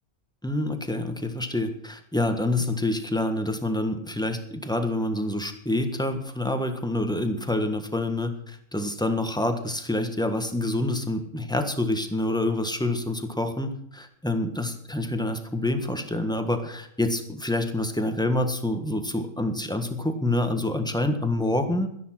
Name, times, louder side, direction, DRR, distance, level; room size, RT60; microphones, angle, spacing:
voice 1, 0.4-21.9, left 1 dB, 5° left, 7 dB, 1.3 m, -27 dB
12.5 x 11.0 x 6.0 m, 0.69 s
omnidirectional pair, 1.4 m